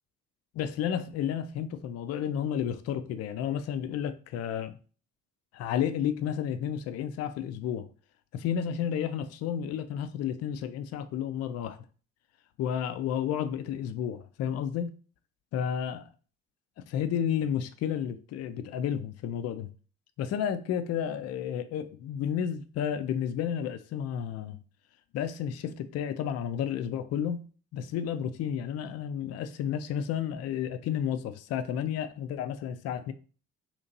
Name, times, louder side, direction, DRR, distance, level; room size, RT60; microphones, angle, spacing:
voice 1, 0.5-4.7 5.5-7.9 8.3-11.8 12.6-14.9 15.5-16.0 16.9-19.7 20.2-24.6 25.1-27.4 27.7-33.1, left 9 dB, 40° left, 0.4 m, -31 dB
2.9 x 2.5 x 3.9 m
figure-of-eight pair, 40°, 40 cm